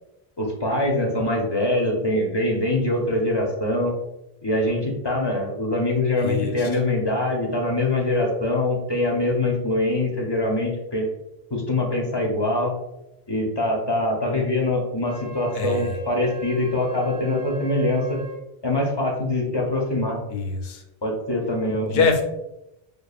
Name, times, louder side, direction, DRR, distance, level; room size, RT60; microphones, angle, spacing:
voice 1, 0.4-3.9 4.4-11.1 11.5-12.7 13.3-18.2 18.6-20.2 21.0-22.0, left 1 dB, 30° left, -1 dB, 0.5 m, -23 dB
voice 2, 6.2-6.8 15.5-16.0 20.3-20.8 21.9-22.2, left 4 dB, 80° left, 4 dB, 0.8 m, -24 dB
Wind instrument woodwind instrument, 15.0-18.4, left 2 dB, 10° right, 0.7 m, -40 dB
5.1 x 2.3 x 2.3 m, 0.90 s
omnidirectional pair, 1.1 m